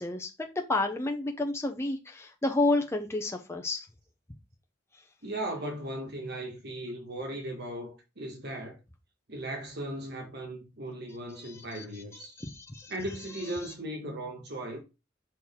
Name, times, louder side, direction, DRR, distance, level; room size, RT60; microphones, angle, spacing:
voice 1, 0.0-3.9 11.3-11.8 12.4-12.9, left 2 dB, 15° left, 0.7 m, -30 dB
voice 2, 5.2-8.8 9.3-12.4 12.9-14.8, right 1 dB, 60° right, 1.4 m, -37 dB
6.0 x 4.4 x 3.7 m
head